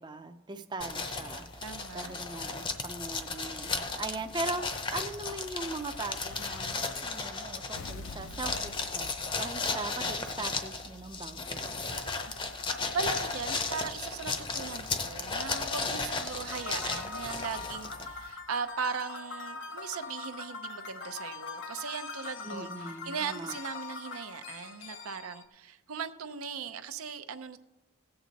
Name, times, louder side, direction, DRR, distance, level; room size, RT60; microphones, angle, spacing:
voice 1, 0.0-9.1 9.4-12.1 22.4-23.6, right 3 dB, 20° right, 7 dB, 0.5 m, -40 dB
sound 1, 0.8-18.3, left 4 dB, 25° left, 0.7 m, -35 dB
voice 2, 1.6-2.1 9.7-9.8 12.4-12.5 12.9-27.6, right 6 dB, 85° right, 10 dB, 0.6 m, -38 dB
Explosion, 3.9-6.7 7.7-9.8, left 3 dB, 75° left, 0.6 m, -48 dB
sound 2, 16.5-25.4, left 4 dB, 60° left, 1.1 m, -42 dB
16.5 x 7.8 x 4.0 m, 1.1 s
head